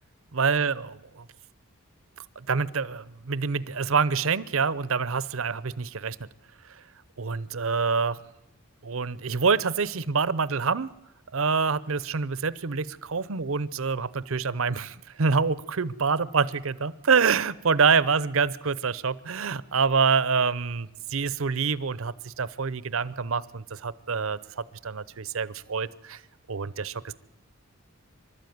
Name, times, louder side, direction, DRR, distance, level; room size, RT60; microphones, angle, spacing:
voice 1, 0.3-1.0 2.4-6.3 7.2-8.2 8.8-10.9 11.3-26.2 26.5-27.1, right 5 dB, 65° right, 19 dB, 0.7 m, -26 dB
25.0 x 12.5 x 9.4 m, 0.94 s
head